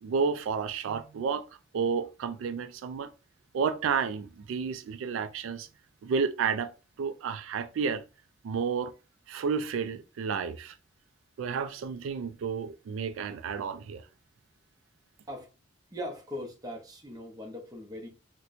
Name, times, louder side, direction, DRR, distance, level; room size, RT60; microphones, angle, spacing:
voice 1, 0.0-1.5 1.7-3.1 3.5-5.7 6.0-6.7 7.0-8.0 8.4-8.9 9.3-10.7 11.4-14.0, right 6 dB, 90° right, 0.3 m, -31 dB
voice 2, 15.9-18.1, left 1 dB, 20° right, 0.7 m, -40 dB
4.2 x 2.1 x 2.5 m
head